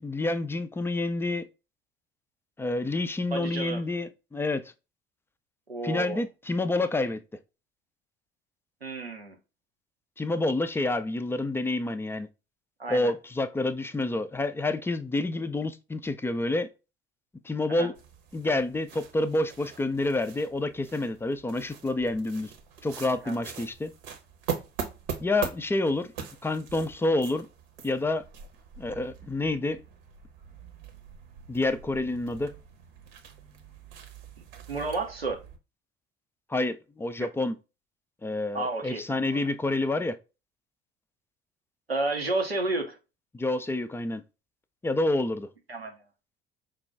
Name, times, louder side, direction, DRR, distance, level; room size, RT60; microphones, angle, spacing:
voice 1, 0.0-1.5 2.6-4.7 5.8-7.2 10.2-12.3 12.9-16.7 17.4-17.9 18.3-22.5 22.8-23.9 25.2-26.1 26.4-27.5 27.8-28.3 28.8-29.8 31.5-32.5 36.5-37.5 38.2-40.2 43.3-44.2 44.8-45.5, left 2 dB, 10° left, 0.3 m, -28 dB
voice 2, 3.3-3.8 5.7-6.2 8.8-9.4 12.8-13.1 17.7-17.9 23.2-23.4 34.4-35.4 38.5-39.4 41.9-43.0 45.7-46.0, right 2 dB, 90° right, 0.6 m, -31 dB
sound 1, 17.9-35.6, right 7 dB, 65° right, 0.8 m, -42 dB
5.2 x 2.2 x 3.3 m
figure-of-eight pair, 55°, 30 cm